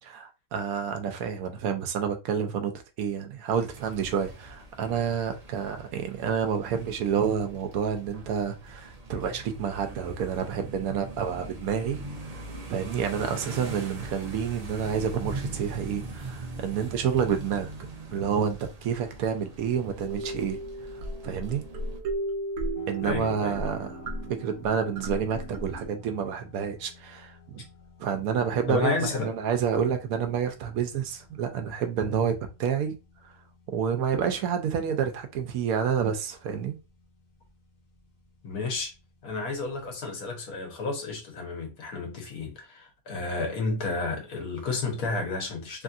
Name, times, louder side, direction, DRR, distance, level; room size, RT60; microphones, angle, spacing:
voice 1, 0.1-2.7 3.0-12.0 12.7-17.7 18.1-20.6 21.2-21.6 22.9-24.0 24.3-27.7 28.0-33.0 33.2-33.3 33.7-36.8, right 7 dB, 90° right, 1.1 m, -29 dB
sound 1, 3.5-22.0, right 2 dB, 45° right, 0.5 m, -41 dB
sound 2, 20.1-25.9, right 1 dB, 70° right, 1.0 m, -35 dB
sound 3, 22.7-40.0, left 6 dB, 40° left, 1.1 m, -55 dB
voice 2, 23.0-23.6 28.7-29.3 38.4-38.9 39.2-45.8, left 3 dB, 90° left, 1.5 m, -31 dB
3.3 x 2.6 x 2.4 m
omnidirectional pair, 1.5 m